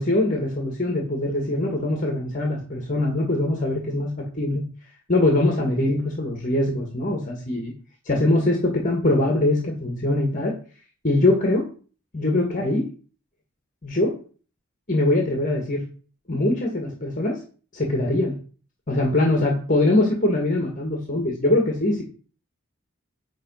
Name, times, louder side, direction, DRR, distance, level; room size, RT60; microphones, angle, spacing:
voice 1, 0.0-4.6 5.1-7.7 8.0-10.5 11.0-11.6 12.1-12.8 13.8-14.2 14.9-15.9 16.3-17.4 17.7-18.4 18.9-22.0, left 2 dB, 40° left, 2 dB, 1.4 m, -22 dB
9.3 x 3.4 x 5.3 m, 0.40 s
head